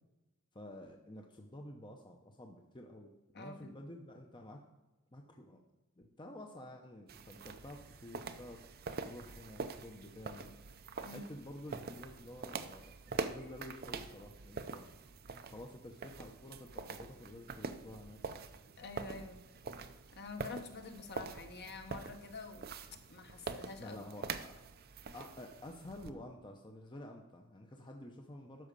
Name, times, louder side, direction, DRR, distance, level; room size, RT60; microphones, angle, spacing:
voice 1, 0.5-4.6 5.1-5.6 6.0-8.6 9.0-10.5 11.1-13.0 13.2-15.0 15.5-18.2 23.8-24.6 25.1-28.7, left 1 dB, 20° left, 2 dB, 0.8 m, -50 dB
voice 2, 3.3-3.7 11.0-11.3 18.8-19.4 20.1-22.7 23.1-24.0, left 3 dB, 50° left, 5 dB, 1.2 m, -47 dB
sound 1, 7.1-26.1, right 4 dB, 45° right, 0.6 m, -45 dB
12.5 x 5.0 x 6.7 m, 1.1 s
head